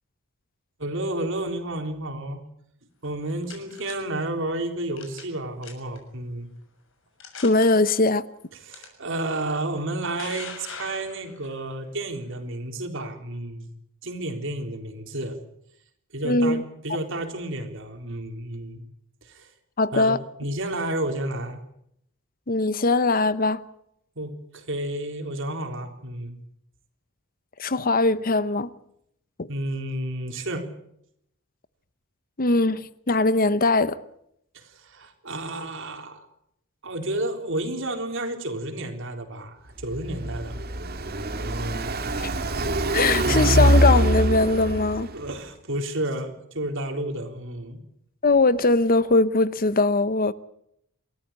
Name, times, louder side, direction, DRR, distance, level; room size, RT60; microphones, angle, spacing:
voice 1, 0.8-2.4 3.0-6.5 8.5-13.7 14.0-15.4 16.1-18.8 19.2-19.5 19.9-20.1 20.4-21.6 24.2-26.4 29.5-30.7 34.5-36.3 36.8-40.5 45.1-47.8, right 1 dB, 65° right, 3.9 m, -31 dB
sound 1, 3.0-3.9 5.0-5.3 5.6-6.0 6.6-6.7 7.2-7.7 8.7-8.9 9.8-11.5, left 6 dB, 65° left, 6.6 m, -41 dB
voice 2, 7.4-8.2 16.2-16.6 19.8-20.2 22.5-23.6 27.6-28.7 32.4-34.0 42.9-45.1 48.2-50.3, left 3 dB, 40° left, 0.9 m, -21 dB
Car passing by, 39.8-45.3, right 1 dB, 45° right, 2.0 m, -23 dB
29.0 x 14.0 x 8.6 m
head